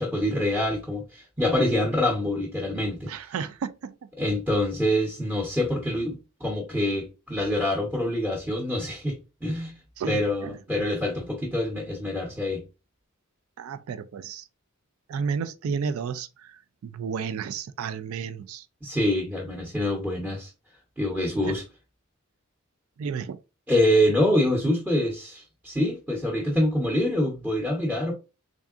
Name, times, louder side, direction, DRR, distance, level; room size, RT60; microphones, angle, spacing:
voice 1, 0.0-3.1 4.2-9.8 10.1-12.6 18.8-20.5 21.0-21.6 23.7-28.1, left 1 dB, 5° right, 0.9 m, -25 dB
voice 2, 3.1-3.9 10.0-10.6 13.6-14.5 15.1-18.6 21.4-21.5 23.0-23.4, right 6 dB, 75° right, 0.3 m, -32 dB
3.6 x 3.6 x 2.4 m
head